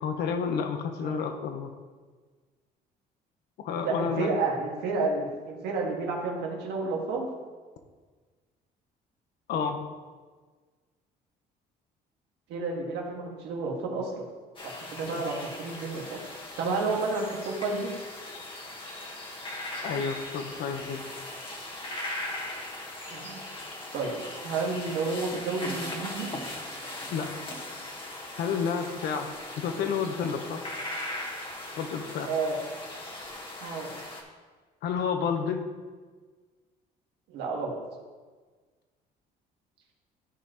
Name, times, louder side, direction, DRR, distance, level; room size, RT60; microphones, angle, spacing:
voice 1, 0.0-1.7 3.6-4.3 9.5-9.8 15.0-15.2 19.8-21.0 27.1-27.3 28.4-29.3 29.6-30.6 31.8-32.3 34.8-35.7, left 6 dB, 75° left, 6 dB, 1.0 m, -30 dB
voice 2, 3.8-7.3 12.5-14.3 14.6-16.2 16.6-17.9 23.1-23.4 23.9-24.2 24.4-26.3 32.3-32.6 33.6-33.9 37.3-37.8, right 3 dB, 85° right, -1 dB, 1.8 m, -31 dB
sound 1, 14.6-34.2, left 1 dB, 30° left, 1.4 m, -39 dB
14.0 x 5.2 x 3.0 m, 1.4 s
cardioid pair, 110°, 17 cm